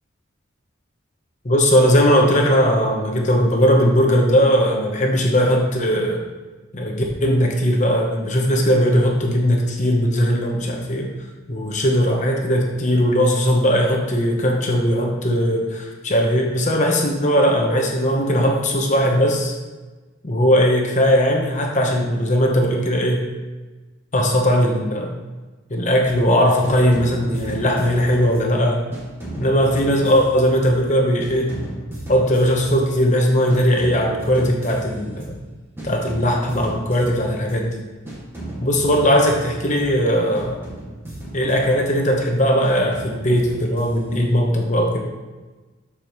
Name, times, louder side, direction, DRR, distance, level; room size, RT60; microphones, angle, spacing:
voice 1, 1.4-6.2 6.7-11.1 11.5-19.6 20.2-23.2 24.1-25.1 25.7-28.8 29.4-31.5 32.1-35.4 35.8-37.8 38.6-40.6 41.3-45.0, equal, 40° left, 1 dB, 1.0 m, -18 dB
sound 1, 26.1-26.3 26.6-28.6 28.9-30.9 31.2-33.1 33.5-35.5 35.8-37.7 38.1-40.1 40.3-42.2 42.6-44.3, right 1 dB, 10° right, 1.9 m, -35 dB
12.5 x 4.9 x 3.1 m, 1.2 s
head